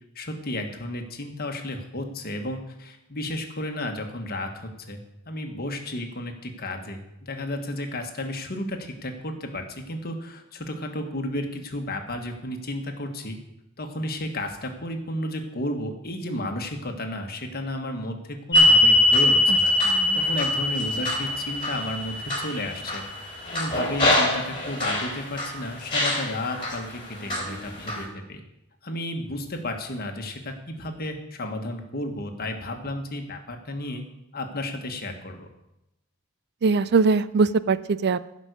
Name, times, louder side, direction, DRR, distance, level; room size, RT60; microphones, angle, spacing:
voice 1, 0.1-13.4 13.8-19.8 20.1-23.0 23.5-28.4 28.8-34.0 34.3-35.5, left 1 dB, 45° left, 4 dB, 1.5 m, -33 dB
sound 1, 18.5-25.5 25.9-26.7 27.3-28.0, left 1 dB, 25° left, 3.2 m, -22 dB
voice 2, 19.8-20.2 36.6-38.2, right 4 dB, 50° right, 16 dB, 0.4 m, -22 dB
16.0 x 5.4 x 6.7 m, 0.89 s
head